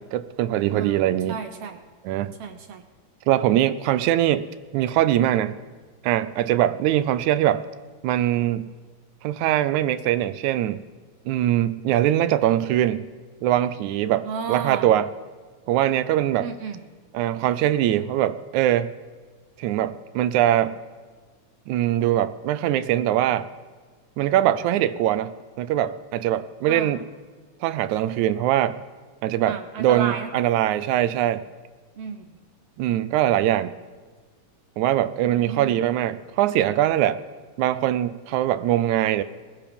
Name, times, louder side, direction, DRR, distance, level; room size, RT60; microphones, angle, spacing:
voice 1, 0.0-1.4 2.0-2.3 3.3-4.5 4.7-5.6 6.0-7.6 8.0-8.7 9.2-10.8 11.3-13.1 13.4-15.1 15.7-16.5 17.1-18.9 19.6-20.8 21.7-23.5 24.2-27.1 27.6-28.8 29.2-31.5 32.8-33.8 34.8-37.2 37.6-39.2, right 12 dB, 85° right, 14 dB, 2.0 m, -22 dB
voice 2, 0.7-1.8 2.4-2.8 14.2-14.9 16.4-16.8 26.7-26.9 29.4-30.3 32.0-32.2 35.3-35.8, right 6 dB, 65° right, 7 dB, 1.7 m, -33 dB
19.0 x 13.5 x 5.3 m, 1.4 s
omnidirectional pair, 3.3 m